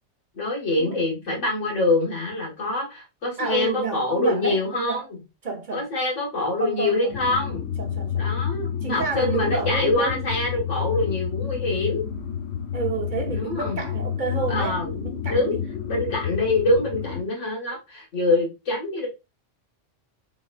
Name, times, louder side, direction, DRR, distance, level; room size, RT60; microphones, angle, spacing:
voice 1, 0.3-5.0 5.7-7.7 8.2-12.0 13.3-13.8 14.5-15.0 15.3-15.6 15.9-19.1, left 2 dB, 90° left, 1.9 m, -25 dB
voice 2, 3.4-5.0 5.4-5.9 6.6-7.2 7.8-8.3 8.8-10.3 12.7-15.6, right 4 dB, 50° right, 0.8 m, -30 dB
sound 1, 7.1-17.2, left 8 dB, 70° left, 0.9 m, -29 dB
4.2 x 3.9 x 2.2 m
omnidirectional pair, 1.2 m